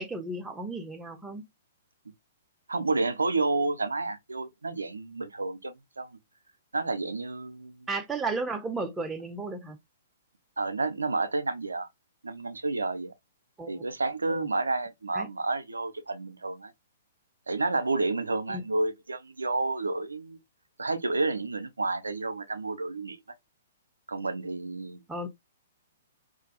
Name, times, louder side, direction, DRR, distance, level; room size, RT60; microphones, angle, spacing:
voice 1, 0.0-1.5 7.9-9.8 13.6-13.8 14.3-14.5 15.1-15.3 18.5-18.6 25.1-25.3, right 3 dB, 10° right, 0.4 m, -34 dB
voice 2, 2.7-6.2 6.7-7.9 10.6-11.9 12.2-13.1 13.7-16.7 17.5-20.4 20.8-23.2 24.1-25.0, right 3 dB, 75° right, 0.4 m, -30 dB
2.4 x 2.3 x 2.5 m
figure-of-eight pair, 115°, 0 cm